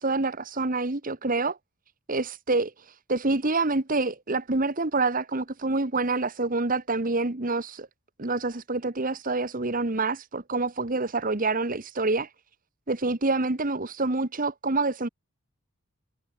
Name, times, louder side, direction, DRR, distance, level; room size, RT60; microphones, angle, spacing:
voice 1, 0.0-1.6 2.1-7.9 8.2-12.3 12.9-15.1, right 3 dB, 40° right, 1.4 m, -27 dB
head